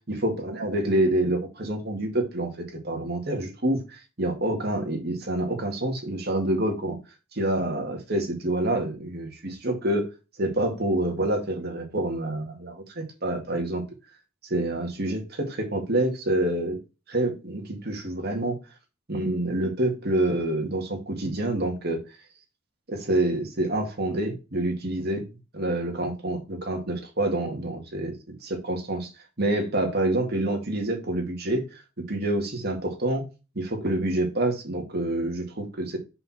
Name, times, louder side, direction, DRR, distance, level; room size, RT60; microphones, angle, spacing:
voice 1, 0.1-7.0 7.3-10.1 10.4-13.9 14.5-16.8 17.1-18.6 19.1-22.0 22.9-25.3 25.5-28.1 28.4-29.1 29.4-31.6 32.0-33.2 33.6-36.0, right 1 dB, 50° right, 3 dB, 2.1 m, -27 dB
5.8 x 5.4 x 4.3 m, 0.29 s
head